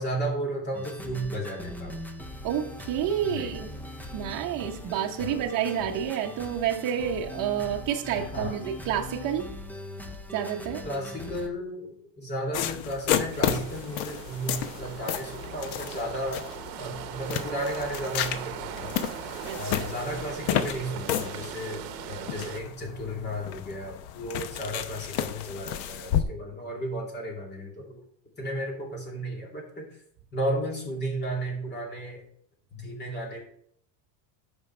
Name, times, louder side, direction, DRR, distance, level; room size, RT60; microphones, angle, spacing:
voice 1, 0.0-2.0 3.2-3.6 5.2-5.5 8.1-8.6 10.8-16.4 16.8-19.0 19.5-28.0 28.4-30.0 30.3-32.2 32.7-33.5, right 1 dB, 20° left, 2.6 m, -34 dB
sound 1, 0.7-11.5, left 1 dB, 5° left, 0.5 m, -41 dB
voice 2, 2.4-3.7 4.1-9.5 10.3-10.9 19.4-19.9, right 9 dB, 45° right, 1.1 m, -29 dB
sound 2, 12.5-26.2, left 10 dB, 65° left, 0.9 m, -32 dB
sound 3, 13.3-22.6, right 11 dB, 70° right, 1.0 m, -40 dB
13.5 x 5.4 x 3.3 m
cardioid pair, 145°, 48 cm